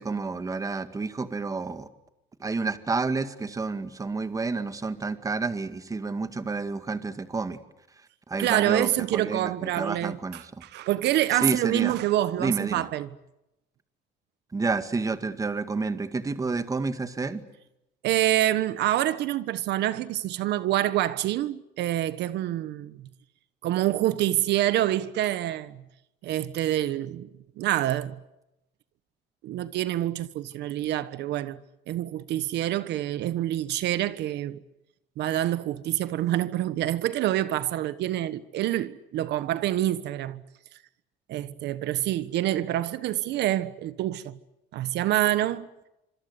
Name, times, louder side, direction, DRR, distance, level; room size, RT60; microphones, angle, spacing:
voice 1, 0.0-1.9 2.4-7.6 8.3-10.4 11.4-12.0 12.4-12.8 14.5-17.4, right 4 dB, 20° right, 2.1 m, -29 dB
voice 2, 8.4-13.1 18.0-23.1 23.6-25.8 26.2-27.3 27.6-28.2 29.4-31.6 31.9-34.6 35.2-40.4 41.3-44.4 44.7-45.7, right 13 dB, 70° right, 1.3 m, -27 dB
26.5 x 25.5 x 8.2 m
cardioid pair, 130°, 18 cm